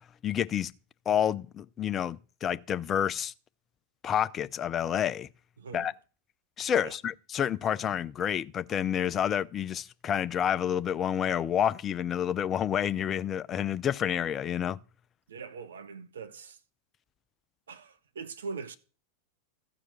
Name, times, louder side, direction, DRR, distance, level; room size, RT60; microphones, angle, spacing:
voice 1, 0.2-0.7 1.1-3.3 4.0-5.3 5.7-5.9 6.6-14.8, left 9 dB, 25° left, 0.4 m, -29 dB
voice 2, 5.6-5.9 6.8-7.0 15.3-16.6 17.7-18.8, right 5 dB, 65° right, 0.7 m, -41 dB
14.0 x 4.9 x 6.9 m
figure-of-eight pair, 90°, 0 cm